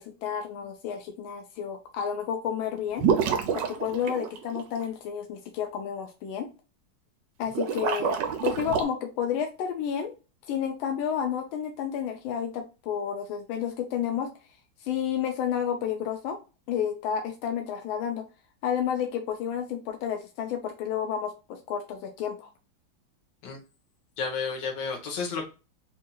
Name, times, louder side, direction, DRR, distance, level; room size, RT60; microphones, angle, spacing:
voice 1, 0.0-3.0 3.5-6.5 7.4-10.1 10.5-14.3 14.8-16.4 16.7-18.3 18.6-22.5, left 8 dB, 90° left, 5 dB, 1.4 m, -31 dB
sound 1, 3.0-4.8 7.5-8.8, right 7 dB, 70° right, 1.3 m, -27 dB
voice 2, 24.2-25.5, left 5 dB, 65° left, 3 dB, 1.7 m, -31 dB
4.2 x 2.7 x 2.2 m, 0.31 s
omnidirectional pair, 2.2 m